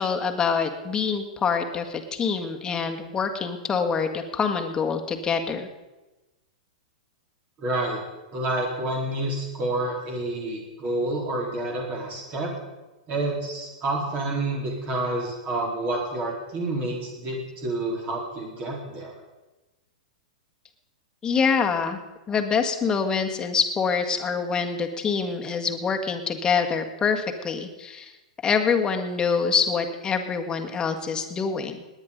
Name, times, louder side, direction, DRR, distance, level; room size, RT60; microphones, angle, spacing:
voice 1, 0.0-5.7 21.2-22.0 22.3-28.1 28.4-31.8, left 5 dB, 20° left, 4 dB, 1.7 m, -25 dB
voice 2, 7.6-8.0 8.3-12.5 13.1-19.2, right 2 dB, 35° right, -1 dB, 4.0 m, -29 dB
19.0 x 9.9 x 5.2 m, 1.1 s
hypercardioid pair, 120°, 4 cm